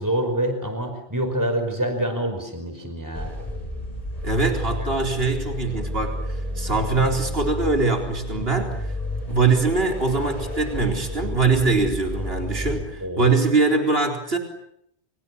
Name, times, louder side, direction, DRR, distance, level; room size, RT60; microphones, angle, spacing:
voice 1, 0.0-3.3 13.0-13.3, right 1 dB, 15° right, 6 dB, 5.3 m, -26 dB
sound 1, 3.1-12.9, left 1 dB, 35° left, 7.0 m, -31 dB
voice 2, 4.2-8.9 9.3-14.4, right 3 dB, 65° right, 3 dB, 4.4 m, -22 dB
29.5 x 28.0 x 7.2 m, 0.75 s
omnidirectional pair, 1.1 m